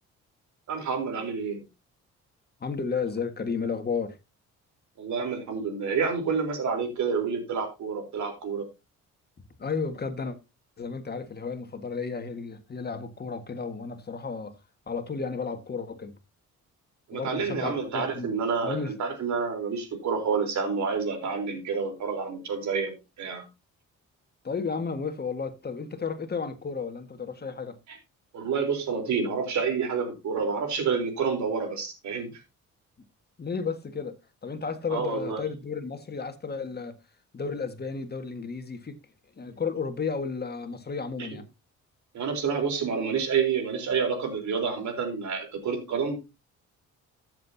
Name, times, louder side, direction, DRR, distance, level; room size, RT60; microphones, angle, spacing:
voice 1, 0.7-1.6 5.0-8.7 17.1-23.4 27.9-28.0 28.3-32.3 34.9-35.4 41.2-41.3 42.1-46.1, right 5 dB, 70° right, 3.8 m, -29 dB
voice 2, 2.6-4.2 9.6-10.4 10.8-14.5 14.9-16.1 17.1-18.3 18.6-19.0 24.4-27.8 33.4-34.1 34.4-36.9 37.3-39.0 39.4-41.4, left 5 dB, 35° left, 1.7 m, -33 dB
14.0 x 7.7 x 2.8 m
cardioid pair, 90°, 30 cm